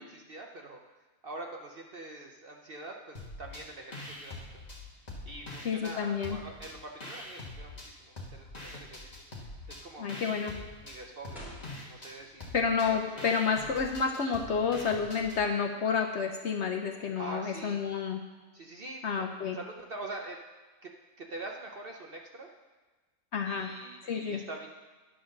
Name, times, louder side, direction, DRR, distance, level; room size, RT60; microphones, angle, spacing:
voice 1, 0.1-0.8 1.2-4.6 5.2-9.2 9.7-11.4 11.9-12.5 12.9-13.4 17.2-17.8 18.5-20.4 20.8-20.9 21.2-22.5 23.4-24.7, right 2 dB, 50° right, 1 dB, 0.7 m, -44 dB
sound 1, 3.1-3.6 3.9-5.9 6.2-7.9 8.2-15.4, left 2 dB, 25° left, 1.5 m, -44 dB
voice 2, 5.6-6.4 10.0-10.5 12.5-18.2 19.0-19.6 23.3-23.7 24.0-24.4, left 6 dB, 60° left, 3 dB, 0.8 m, -30 dB
sound 2, 11.3-12.6 12.9-14.4, right 1 dB, ahead, 3.2 m, -51 dB
10.0 x 5.0 x 6.4 m, 1.2 s
omnidirectional pair, 1.6 m